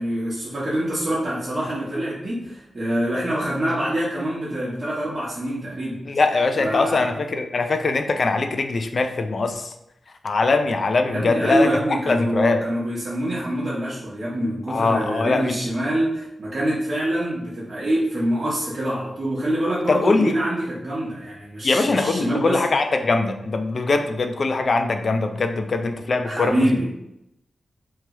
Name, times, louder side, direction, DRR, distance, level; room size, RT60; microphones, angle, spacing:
voice 1, 0.0-6.0 6.6-7.1 11.1-22.6 26.2-26.9, right 1 dB, 40° right, -9 dB, 0.8 m, -25 dB
voice 2, 6.1-9.7 10.2-11.7 12.1-12.6 14.7-15.6 19.9-20.3 21.6-26.5, left 3 dB, 50° left, 6 dB, 0.3 m, -22 dB
3.0 x 2.3 x 2.9 m, 0.85 s
wide cardioid pair, 100°, 0 cm